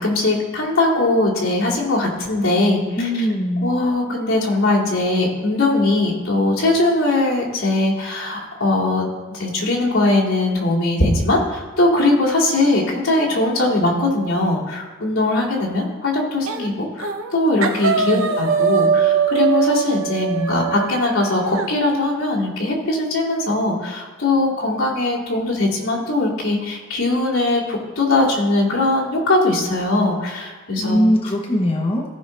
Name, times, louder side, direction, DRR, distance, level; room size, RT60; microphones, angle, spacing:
voice 1, 0.0-3.1 3.6-31.0, left 2 dB, 80° left, -5 dB, 2.4 m, -20 dB
voice 2, 3.0-3.7 18.0-18.3 30.8-32.0, equal, 25° left, -1 dB, 0.8 m, -20 dB
sound 1, 16.5-16.7 17.0-17.3 17.6-21.7, right 7 dB, 70° right, 0.7 m, -21 dB
16.0 x 5.4 x 3.2 m, 1.4 s
head